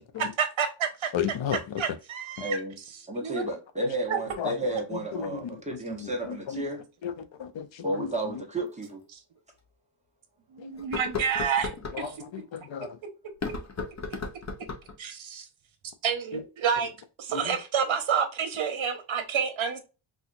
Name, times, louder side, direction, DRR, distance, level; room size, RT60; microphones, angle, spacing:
voice 1, 0.2-1.1 1.5-2.6 3.2-3.4 4.1-4.2 9.1-9.2 10.5-11.7 12.0-12.1 15.0-15.4 16.0-16.9 17.2-19.8, right 7 dB, 75° right, 1.1 m, -29 dB
voice 2, 1.1-1.6 4.4-4.5 4.9-5.3 5.9-6.6 7.0-7.1 7.4-8.1 11.9-12.9 16.3-16.4 17.3-17.5, left 8 dB, 70° left, 0.7 m, -33 dB
voice 3, 2.4-2.8 3.1-6.8 7.8-9.0, right 1 dB, 15° right, 1.0 m, -32 dB
sound 1, 8.8-8.9 9.5-9.6 10.8-12.0 13.3-15.0, left 4 dB, 35° left, 0.7 m, -35 dB
4.3 x 2.4 x 2.5 m
wide cardioid pair, 150°, 48 cm